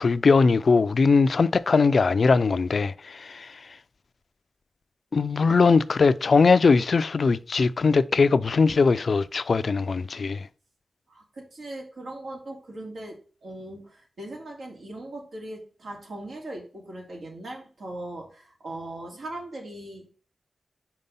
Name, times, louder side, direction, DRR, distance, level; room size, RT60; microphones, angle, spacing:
voice 1, 0.0-3.5 5.1-10.5, left 4 dB, 60° left, 0.4 m, -20 dB
voice 2, 11.1-20.1, right 1 dB, 80° right, 2.6 m, -39 dB
5.5 x 4.5 x 5.4 m
wide cardioid pair, 75°, 0 cm